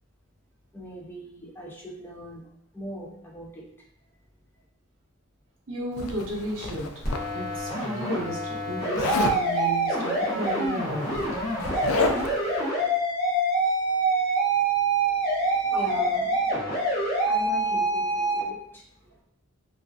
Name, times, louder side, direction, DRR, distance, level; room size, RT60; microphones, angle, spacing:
voice 1, 0.7-2.5 2.7-3.7 15.0-18.8, equal, 10° left, -2 dB, 0.4 m, -41 dB
voice 2, 5.7-6.9 7.3-11.2, equal, 65° right, -3 dB, 0.6 m, -33 dB
Zipper (clothing), 6.0-7.6 8.9-9.4 10.6-10.7 11.0-12.4, left 3 dB, 85° left, 0.3 m, -30 dB
sound 1, 7.0-18.4, right 2 dB, 45° left, 0.7 m, -26 dB
2.4 x 2.3 x 2.2 m, 0.73 s
head